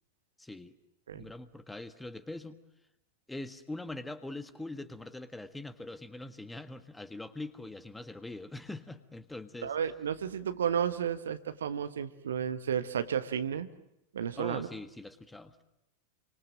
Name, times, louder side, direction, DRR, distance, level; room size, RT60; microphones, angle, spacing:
voice 1, 0.4-0.7 1.1-2.6 3.3-9.7 14.4-15.6, left 2 dB, 5° left, 10 dB, 1.6 m, -42 dB
voice 2, 9.6-13.7 14.1-14.7, right 8 dB, 65° right, 11 dB, 1.3 m, -32 dB
29.0 x 25.0 x 7.5 m, 0.87 s
figure-of-eight pair, 90°, 0 cm